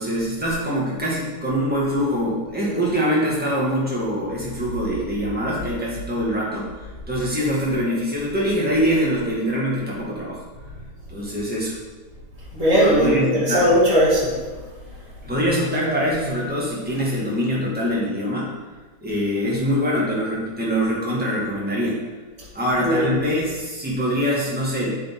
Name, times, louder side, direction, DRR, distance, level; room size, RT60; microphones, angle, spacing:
voice 1, 0.0-6.7 7.1-10.4 11.1-11.8 13.0-13.7 15.2-18.5 19.0-22.0 22.5-25.0, equal, 5° right, -6 dB, 1.2 m, -24 dB
voice 2, 12.5-14.4 22.8-23.1, equal, 15° left, -8 dB, 1.5 m, -18 dB
8.6 x 5.8 x 3.7 m, 1.3 s
omnidirectional pair, 3.5 m